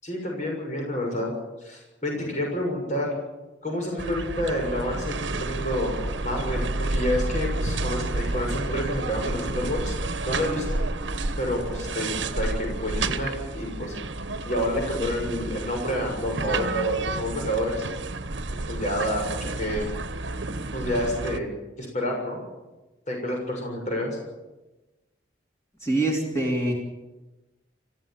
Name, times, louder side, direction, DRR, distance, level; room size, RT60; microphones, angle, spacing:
voice 1, 0.0-1.3 1.6-3.2 3.6-9.9 10.2-10.8 11.4-13.9 14.4-17.8 18.5-19.9 20.7-21.5 21.8-22.4 23.1-24.2, equal, 40° left, 1 dB, 6.7 m, -29 dB
sound 1, 4.0-21.4, right 2 dB, 70° right, 1.2 m, -30 dB
voice 2, 25.8-26.7, right 2 dB, 15° left, -1 dB, 3.3 m, -24 dB
26.5 x 15.5 x 7.6 m, 1.1 s
head